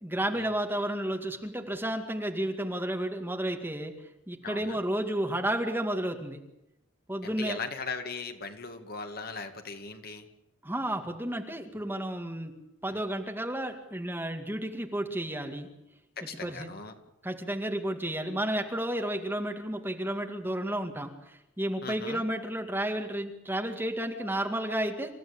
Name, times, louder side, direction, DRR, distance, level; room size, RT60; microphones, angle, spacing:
voice 1, 0.0-3.9 4.3-6.4 7.1-7.6 10.6-12.5 12.8-15.7 16.2-16.7 17.2-25.1, right 1 dB, 10° right, 4 dB, 2.1 m, -32 dB
voice 2, 4.4-4.8 7.2-10.2 12.9-13.0 16.2-16.9 21.8-22.2, left 4 dB, 50° left, 6 dB, 2.3 m, -39 dB
28.0 x 15.0 x 8.7 m, 0.86 s
head